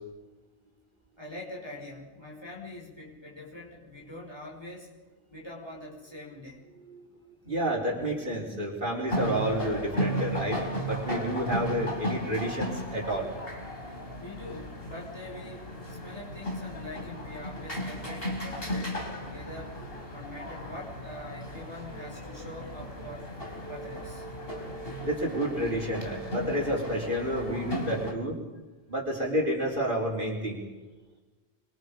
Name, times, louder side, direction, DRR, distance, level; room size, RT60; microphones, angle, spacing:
voice 1, 1.2-4.9 5.3-6.6 14.2-19.7 20.1-23.3 23.7-24.2, left 1 dB, 25° left, -2 dB, 5.5 m, -43 dB
voice 2, 7.5-13.3 25.0-28.3 28.9-30.6, equal, 50° right, 0 dB, 4.4 m, -30 dB
Drums on Middle-eastern holiday, 9.1-28.1, equal, 60° left, 4.0 m, -35 dB
27.0 x 25.5 x 5.3 m, 1.2 s
omnidirectional pair, 1.1 m